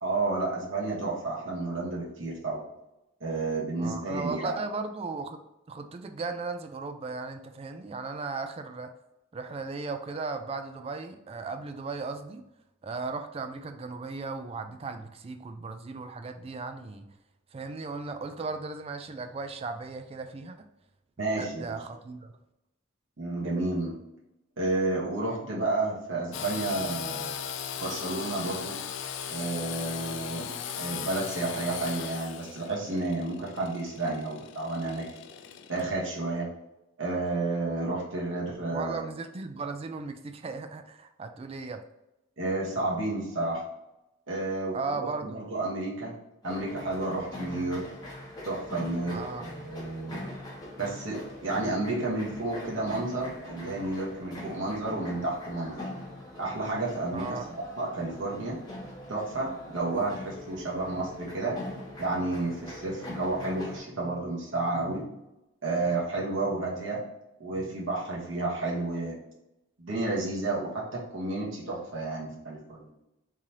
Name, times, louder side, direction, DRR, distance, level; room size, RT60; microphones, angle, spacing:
voice 1, 0.0-2.6 3.2-4.6 21.2-21.8 23.2-24.0 24.6-27.3 27.8-28.8 29.3-30.5 30.8-35.1 35.7-36.5 37.0-39.0 42.4-43.6 44.3-46.1 46.4-47.9 48.4-50.2 50.8-55.9 56.4-58.6 59.1-61.6 62.0-65.1 65.6-67.0 67.4-69.2 69.8-72.9, right 2 dB, 65° right, -4 dB, 1.1 m, -31 dB
voice 2, 3.8-5.4 5.7-8.9 9.3-12.4 12.8-17.0 17.5-20.6 21.2-22.3 25.4-25.5 38.7-41.8 44.7-45.6 49.1-49.5 57.1-57.5 66.6-66.7, right 4 dB, 30° right, 7 dB, 0.3 m, -36 dB
Engine / Sawing, 26.3-35.8, left 8 dB, 60° left, 0.3 m, -38 dB
sound 1, 46.4-63.8, left 1 dB, 20° left, 1.0 m, -42 dB
3.8 x 3.2 x 2.8 m, 0.90 s
head